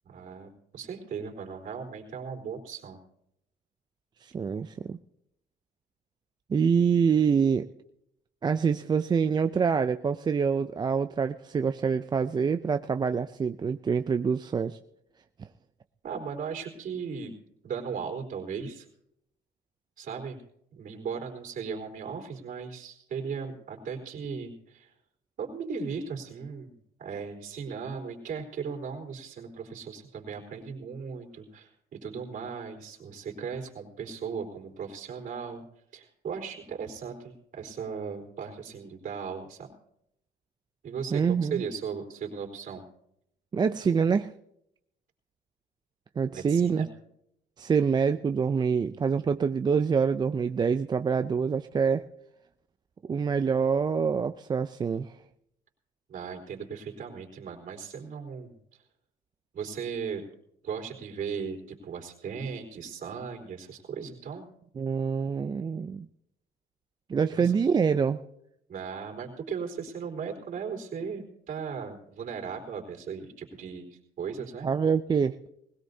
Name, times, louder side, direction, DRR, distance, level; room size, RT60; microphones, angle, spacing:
voice 1, 0.0-3.0 16.0-17.3 17.6-18.9 20.0-20.4 20.7-24.9 25.4-35.6 35.9-39.7 40.8-42.8 46.3-46.9 56.1-58.5 59.5-60.2 60.6-64.5 67.3-67.5 68.7-74.7, right 6 dB, 50° right, 1 dB, 3.9 m, -37 dB
voice 2, 4.2-5.0 6.5-7.7 8.4-14.8 41.1-41.6 43.5-44.3 46.2-46.9 47.6-52.0 53.1-55.1 64.8-66.1 67.1-68.2 74.6-75.4, right 6 dB, 25° right, 9 dB, 0.4 m, -26 dB
20.5 x 17.0 x 2.7 m, 0.76 s
cardioid pair, 110°, 17 cm